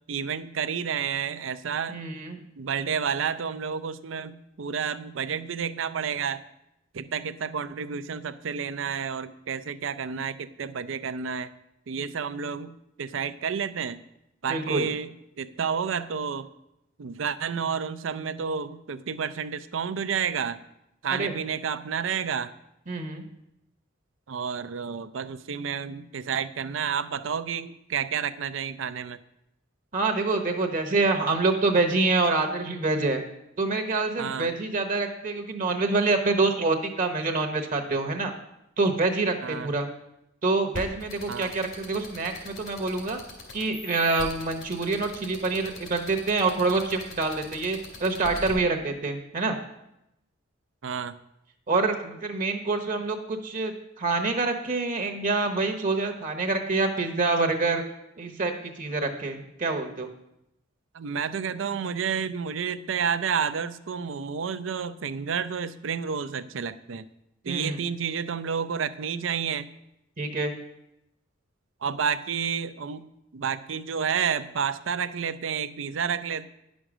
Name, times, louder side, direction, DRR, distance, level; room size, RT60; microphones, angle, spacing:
voice 1, 0.1-2.0 2.6-6.4 6.9-11.5 11.9-14.0 14.4-16.5 17.0-20.6 21.0-22.5 24.3-29.2 34.2-34.5 39.4-39.7 41.3-41.5 50.8-51.1 60.9-67.0 67.4-69.7 71.8-73.1 73.3-76.5, right 6 dB, 70° right, 13 dB, 0.5 m, -30 dB
voice 2, 1.9-2.4 14.5-14.9 21.1-21.3 22.9-23.2 29.9-33.2 33.6-38.3 38.8-39.9 40.4-43.2 43.5-49.6 51.7-57.8 58.2-60.1 67.5-67.8 70.2-70.5, right 3 dB, 45° right, 5 dB, 0.9 m, -26 dB
sound 1, 40.7-48.5, left 3 dB, 80° left, 3.0 m, -40 dB
10.0 x 6.3 x 6.1 m, 0.85 s
head